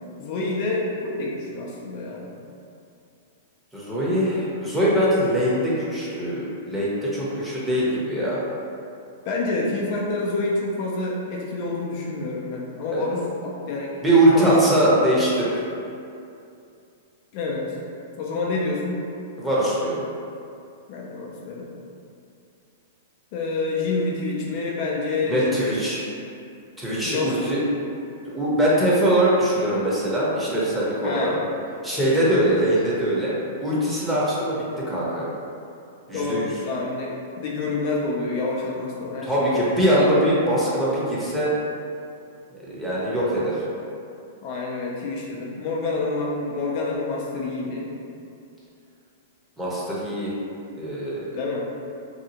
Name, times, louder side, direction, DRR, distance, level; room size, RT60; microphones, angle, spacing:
voice 1, 0.2-2.3 9.3-15.2 17.3-17.8 18.2-19.0 20.9-21.7 23.3-25.6 27.0-27.6 31.0-31.4 36.1-39.6 44.4-47.9 51.3-51.7, left 3 dB, 50° left, -3 dB, 0.4 m, -28 dB
voice 2, 3.7-8.4 12.9-13.0 14.0-15.6 19.4-20.0 25.2-26.0 26.8-27.6 28.2-31.3 31.8-33.3 33.6-35.2 36.1-36.4 39.2-41.5 42.5-43.6 49.6-50.3 50.8-51.3, right 1 dB, 5° right, -8 dB, 0.7 m, -22 dB
2.7 x 2.3 x 2.8 m, 2.6 s
hypercardioid pair, 125°, 0 cm